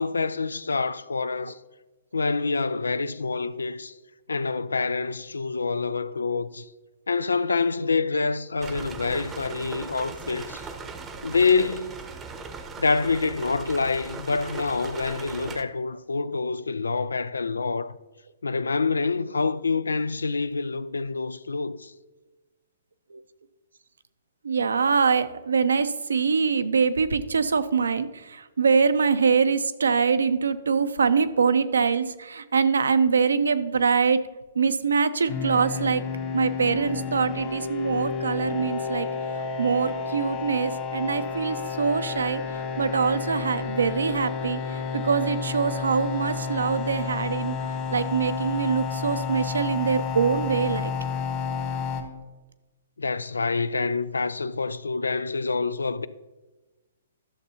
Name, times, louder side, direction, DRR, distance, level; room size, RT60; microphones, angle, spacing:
voice 1, 0.0-1.6 2.1-3.9 4.3-6.7 7.1-10.6 11.2-12.0 12.8-18.0 18.4-21.9 53.0-56.1, left 4 dB, 90° left, 0.4 m, -26 dB
sound 1, 8.6-15.6, right 4 dB, 15° right, 0.7 m, -39 dB
voice 2, 24.4-34.2 34.6-36.0 36.3-39.1 39.6-42.4 42.8-47.6 47.9-50.9, right 5 dB, 80° right, 0.6 m, -24 dB
sound 2, 35.3-52.0, left 6 dB, 35° left, 1.6 m, -31 dB
12.0 x 6.8 x 2.8 m
hypercardioid pair, 130°, 0 cm